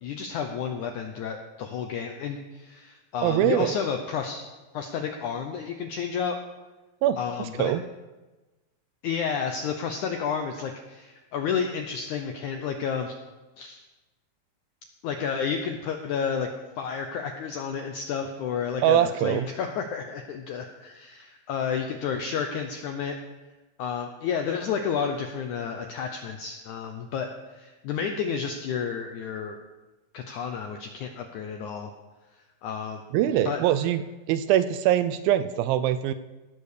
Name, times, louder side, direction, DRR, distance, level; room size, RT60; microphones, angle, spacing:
voice 1, 0.0-4.5 4.7-6.4 7.2-7.7 9.0-13.1 13.6-13.8 15.0-16.5 16.8-23.2 23.8-29.6 30.1-31.9 32.6-33.0 33.4-33.6, left 6 dB, 80° left, 5 dB, 1.7 m, -31 dB
voice 2, 3.2-3.7 7.0-7.8 18.8-19.5 33.1-34.0 34.3-36.1, right 11 dB, 80° right, 12 dB, 2.2 m, -23 dB
18.0 x 7.0 x 6.7 m, 1.2 s
omnidirectional pair, 4.5 m